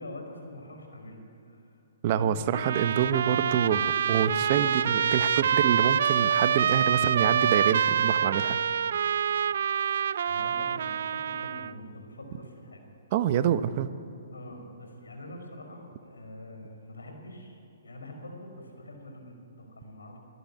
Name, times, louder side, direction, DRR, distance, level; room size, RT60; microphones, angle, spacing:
voice 1, 0.0-1.8 2.1-2.4 10.3-12.8 14.3-20.2, left 1 dB, 80° left, 3 dB, 5.4 m, -44 dB
voice 2, 2.0-8.6 13.1-13.9, right 9 dB, 40° right, 12 dB, 0.9 m, -26 dB
Trumpet, 2.5-11.7, right 8 dB, 60° right, 0.4 m, -26 dB
25.5 x 12.5 x 10.0 m, 2.6 s
figure-of-eight pair, 130°, 0 cm